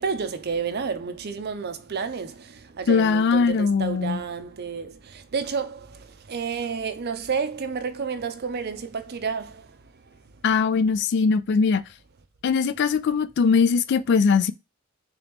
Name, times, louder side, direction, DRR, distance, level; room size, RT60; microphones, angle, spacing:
voice 1, 0.0-9.7, right 5 dB, 50° right, 0.5 m, -30 dB
voice 2, 2.9-4.2 10.4-11.8 12.4-14.5, left 5 dB, 55° left, 0.3 m, -21 dB
3.7 x 3.1 x 3.5 m
head